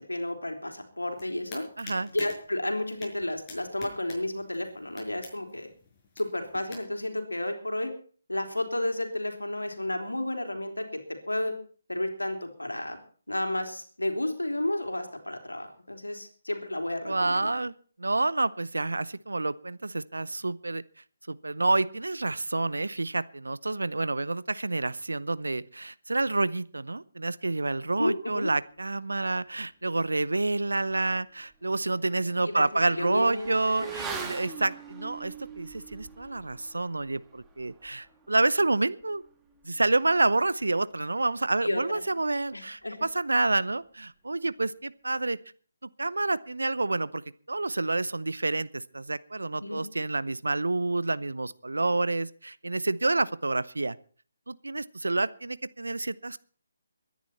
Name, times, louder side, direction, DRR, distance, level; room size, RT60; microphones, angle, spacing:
voice 1, 0.1-1.6 2.1-5.7 6.2-7.9 8.3-11.0 11.3-11.5 11.9-13.0 13.3-17.5 28.0-28.5 32.4-33.5 33.8-33.9 41.6-42.0 42.5-43.0 49.6-49.8, left 1 dB, 90° left, 5 dB, 3.3 m, -32 dB
sound 1, 1.0-6.8, left 3 dB, 20° left, 5.8 m, -47 dB
voice 2, 1.8-2.1 17.0-17.7 18.0-20.8 21.3-39.2 39.6-45.4 46.0-54.0 54.5-56.5, right 2 dB, 80° right, 18 dB, 0.7 m, -28 dB
Motorcycle / Accelerating revving vroom, 30.9-31.0 31.4-41.4 41.7-41.8, right 5 dB, 10° right, 1.8 m, -44 dB
22.5 x 10.5 x 4.3 m, 0.43 s
figure-of-eight pair, 145°, 0 cm